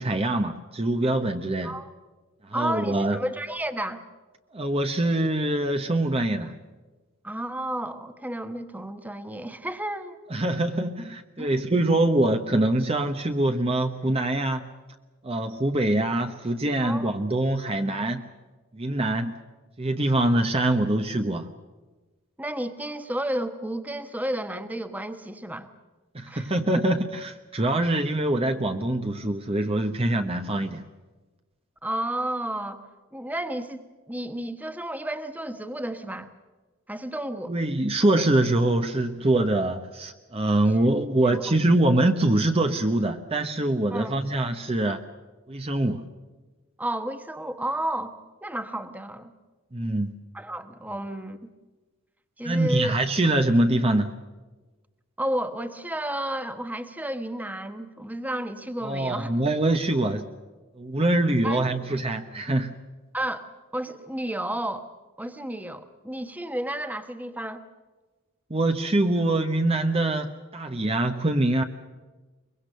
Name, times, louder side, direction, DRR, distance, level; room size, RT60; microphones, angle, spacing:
voice 1, 0.0-1.7 2.4-3.2 4.5-6.6 10.3-14.7 15.2-18.2 18.7-19.3 19.8-21.5 26.1-30.8 37.5-45.0 45.5-46.0 49.7-50.1 52.4-54.1 58.8-60.3 60.8-62.8 68.5-71.6, right 1 dB, 25° right, 6 dB, 1.0 m, -24 dB
voice 2, 2.5-4.0 7.2-10.2 11.4-11.5 16.8-17.1 22.4-25.7 26.3-26.8 31.8-32.8 33.1-36.3 36.9-37.5 40.7-40.8 41.3-41.4 43.9-44.1 46.8-48.1 48.4-49.3 50.3-51.4 52.4-52.9 55.2-59.3 61.4-61.6 63.1-63.5 63.7-64.9 65.2-67.6, right 1 dB, 5° right, 9 dB, 1.2 m, -32 dB
23.5 x 22.5 x 6.7 m, 1.2 s
head